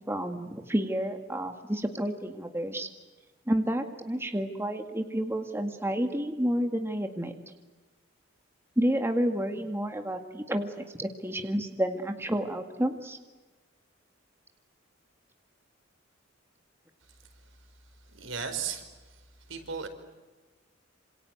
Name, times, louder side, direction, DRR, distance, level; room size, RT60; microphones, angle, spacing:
voice 1, 0.1-2.9 3.5-7.3 8.8-13.2, equal, 15° right, 5 dB, 1.9 m, -30 dB
voice 2, 18.1-19.2 19.5-19.9, right 6 dB, 80° right, 7 dB, 4.9 m, -36 dB
27.5 x 27.5 x 7.9 m, 1.2 s
head